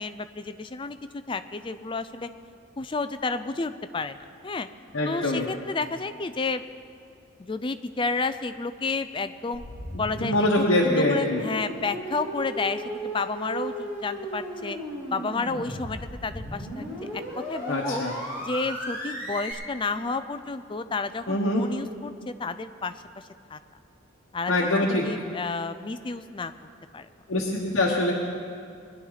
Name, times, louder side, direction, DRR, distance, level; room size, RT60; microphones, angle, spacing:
voice 1, 0.0-2.3 2.8-4.2 4.4-4.7 5.1-6.6 7.4-9.6 10.0-14.8 15.1-17.1 17.4-18.0 18.4-22.9 23.5-23.6 24.3-24.8 25.1-26.5 26.9-27.1, left 3 dB, 25° left, 10 dB, 0.4 m, -31 dB
voice 2, 4.9-5.5 10.2-11.4 17.7-18.2 21.3-21.6 24.5-25.1 27.3-28.1, left 1 dB, 70° left, -2 dB, 1.2 m, -24 dB
sound 1, 9.5-19.5, equal, 15° right, 3.2 m, -35 dB
21.0 x 11.0 x 4.0 m, 2.3 s
head